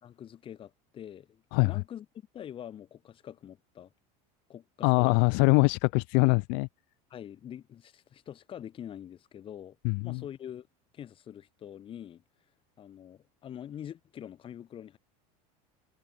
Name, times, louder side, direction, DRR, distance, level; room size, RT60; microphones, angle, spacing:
voice 1, 0.0-2.1 2.3-3.9 4.5-5.2 7.1-9.8 10.0-10.7 10.9-12.2 12.8-15.0, left 10 dB, 30° left, 4.4 m, -44 dB
voice 2, 4.8-6.7 9.8-10.2, left 40 dB or more, 60° left, 0.5 m, -23 dB
cardioid pair, 155°, 18 cm